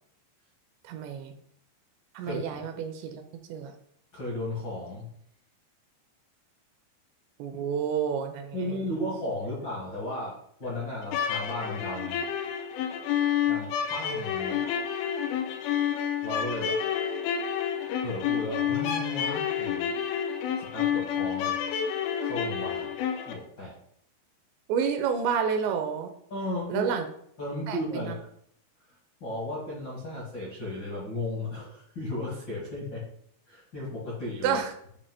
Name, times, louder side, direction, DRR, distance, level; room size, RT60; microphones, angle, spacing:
voice 1, 0.8-1.3 2.1-3.2 3.5-3.7 7.4-8.6 24.7-26.1 26.7-27.1 27.7-28.1 34.4-34.7, right 7 dB, 85° right, 6 dB, 2.7 m, -29 dB
voice 2, 4.1-5.1 8.5-12.2 13.5-14.7 16.2-16.8 18.0-19.9 20.5-21.6 22.2-22.9 23.2-23.8 26.3-26.9 27.4-28.1 29.2-33.0 33.5-34.6, left 1 dB, 70° left, -6 dB, 1.0 m, -35 dB
sound 1, 11.0-23.3, left 8 dB, 85° left, 3.2 m, -29 dB
8.5 x 2.9 x 5.4 m, 0.67 s
omnidirectional pair, 5.4 m